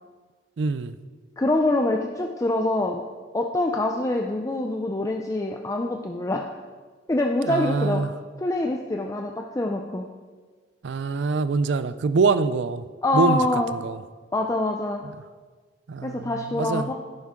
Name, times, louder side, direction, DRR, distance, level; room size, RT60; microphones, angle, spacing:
voice 1, 0.6-0.9 7.5-8.1 10.8-12.8 13.1-13.4 13.8-14.0 15.9-16.9, right 4 dB, 75° right, 14 dB, 0.4 m, -24 dB
voice 2, 1.4-3.0 3.3-6.4 7.1-8.0 8.4-10.1 13.0-13.7 14.3-15.0 16.0-16.9, left 2 dB, 15° left, 2 dB, 0.4 m, -25 dB
11.0 x 9.6 x 3.6 m, 1.5 s
head